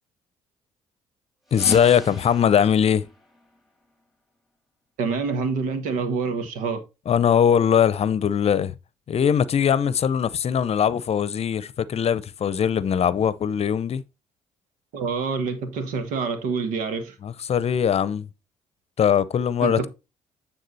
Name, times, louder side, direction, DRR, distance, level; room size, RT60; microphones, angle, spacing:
voice 1, 1.5-3.0 7.1-8.7 9.1-14.0 17.2-18.3 19.0-19.9, left 8 dB, 50° left, 0.7 m, -21 dB
sound 1, 1.5-4.1, left 1 dB, ahead, 1.8 m, -39 dB
voice 2, 5.0-6.8 14.9-17.1 19.6-19.9, right 4 dB, 80° right, 1.4 m, -27 dB
9.3 x 3.7 x 4.1 m
supercardioid pair, 60°, 13 cm